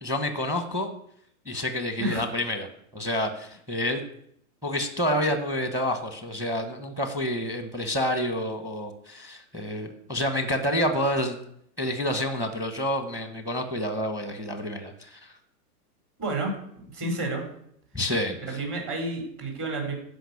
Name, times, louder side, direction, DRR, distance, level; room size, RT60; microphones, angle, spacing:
voice 1, 0.0-0.9 1.5-4.0 4.6-11.4 11.8-15.3 17.9-18.6, left 1 dB, 5° right, 7 dB, 1.2 m, -28 dB
voice 2, 16.2-16.6 16.9-17.5 18.5-19.9, right 2 dB, 30° right, 1 dB, 4.3 m, -30 dB
13.0 x 5.3 x 8.4 m, 0.69 s
hypercardioid pair, 145°, 46 cm